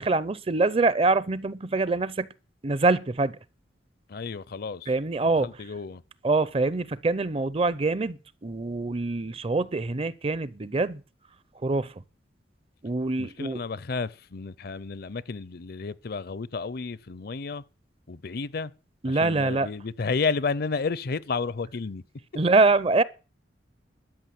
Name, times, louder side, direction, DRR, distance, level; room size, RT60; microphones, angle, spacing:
voice 1, 0.0-2.3 2.6-3.3 4.9-5.5 6.2-11.0 11.6-11.9 12.8-13.6 19.0-19.7 22.3-23.0, right 3 dB, 30° right, 0.5 m, -24 dB
voice 2, 4.1-4.9 5.4-6.0 13.2-17.6 18.1-18.7 19.0-22.0, left 4 dB, 55° left, 0.5 m, -31 dB
12.5 x 6.3 x 9.3 m
head